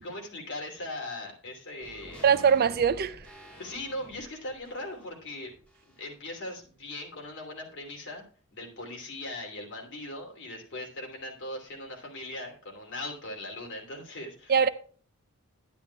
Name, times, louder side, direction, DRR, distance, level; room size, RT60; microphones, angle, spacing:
voice 1, 0.0-2.3 3.6-5.5 6.0-8.2 8.5-14.7, left 1 dB, 60° left, 2.8 m, -39 dB
sound 1, 1.8-6.3 6.6-6.7, equal, 5° left, 3.1 m, -50 dB
voice 2, 2.2-3.2 14.5-14.7, right 7 dB, 45° right, 0.5 m, -22 dB
11.0 x 10.5 x 2.3 m
head